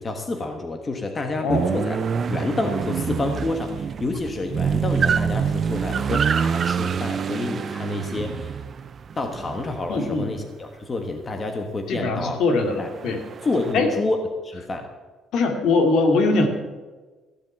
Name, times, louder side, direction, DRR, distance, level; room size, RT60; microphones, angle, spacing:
voice 1, 0.0-2.0 2.3-8.6 9.2-12.4 12.8-12.9 13.4-14.9, left 2 dB, 25° left, 5 dB, 1.4 m, -28 dB
sound 1, 1.5-10.4 12.8-13.7, right 7 dB, 35° right, 0.4 m, -26 dB
voice 2, 9.9-10.3 11.9-13.2 13.7-13.9 15.3-16.5, left 3 dB, 65° left, 5 dB, 2.4 m, -21 dB
15.0 x 7.5 x 8.9 m, 1.3 s
cardioid pair, 140°, 0 cm